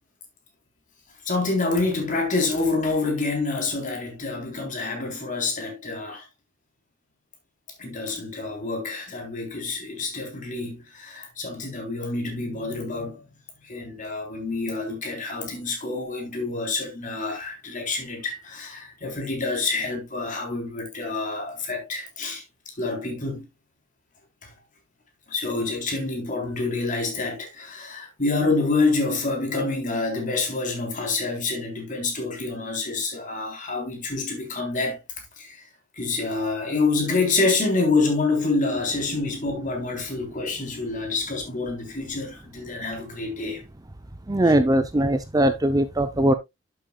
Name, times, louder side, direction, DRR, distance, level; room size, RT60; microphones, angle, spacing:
voice 1, 1.2-6.3 7.8-13.2 13.6-22.4 22.8-23.5 24.4-24.5 25.3-35.0 35.4-35.6 36.0-43.6, left 3 dB, 40° left, 3.7 m, -27 dB
voice 2, 44.3-46.3, right 1 dB, 20° right, 0.6 m, -20 dB
11.5 x 7.5 x 2.3 m
head